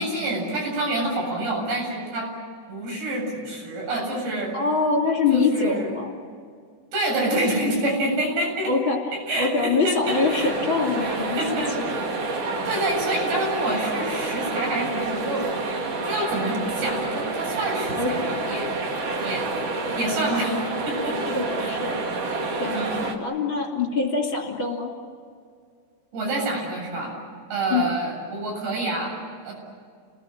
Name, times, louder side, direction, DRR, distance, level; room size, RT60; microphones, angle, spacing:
voice 1, 0.0-2.3 2.7-4.5 5.3-5.9 6.9-8.7 9.1-10.5 11.0-12.3 12.7-15.5 16.0-18.7 19.2-20.6 20.9-21.8 22.7-23.1 26.1-27.2 27.5-29.5, right 1 dB, 85° right, 0 dB, 10.0 m, -27 dB
voice 2, 4.5-6.2 8.6-9.0 9.3-11.9 18.0-18.4 21.3-22.0 22.6-22.8 23.2-24.9 27.7-27.9, left 4 dB, 30° left, 1 dB, 3.4 m, -24 dB
sound 1, 10.0-23.1, right 3 dB, 45° right, 2.7 m, -28 dB
29.5 x 20.0 x 8.9 m, 2.2 s
omnidirectional pair, 4.9 m